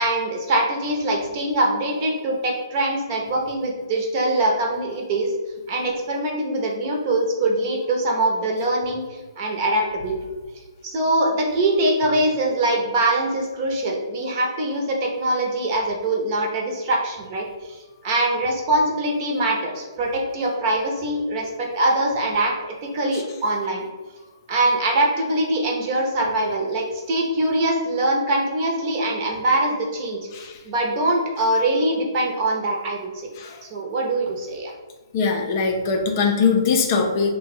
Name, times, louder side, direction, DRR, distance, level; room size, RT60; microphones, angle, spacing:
voice 1, 0.0-5.3 5.7-10.2 10.8-17.8 18.0-22.5 22.9-23.8 24.5-30.2 30.6-33.3 33.7-34.7, right 1 dB, 35° right, 0 dB, 0.8 m, -23 dB
voice 2, 33.4-33.7 35.1-37.4, left 5 dB, 35° left, 2 dB, 0.5 m, -21 dB
3.3 x 2.2 x 4.2 m, 1.3 s
figure-of-eight pair, 135°, 2 cm